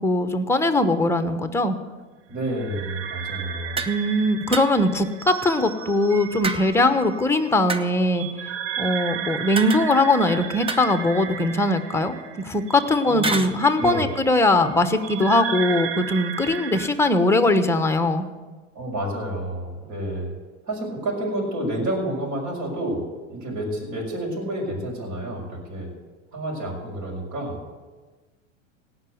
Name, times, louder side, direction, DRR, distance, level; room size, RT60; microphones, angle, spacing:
voice 1, 0.0-1.8 3.8-8.3 8.8-12.1 12.4-18.3, left 2 dB, 5° left, 9 dB, 1.0 m, -21 dB
voice 2, 2.3-3.8 13.0-13.4 13.8-14.1 18.7-20.3 20.7-23.0 23.3-25.9 26.3-27.6, right 1 dB, 50° right, -3 dB, 5.2 m, -29 dB
sound 1, 2.4-16.9, right 8 dB, 70° right, 1.5 m, -35 dB
sound 2, 3.8-4.0 4.5-5.0 6.4-7.0 7.7-8.1 9.6-10.2 10.7-11.4 13.2-13.5, right 3 dB, 15° right, 0.8 m, -30 dB
17.5 x 6.0 x 7.9 m, 1.3 s
hypercardioid pair, 100°, 39 cm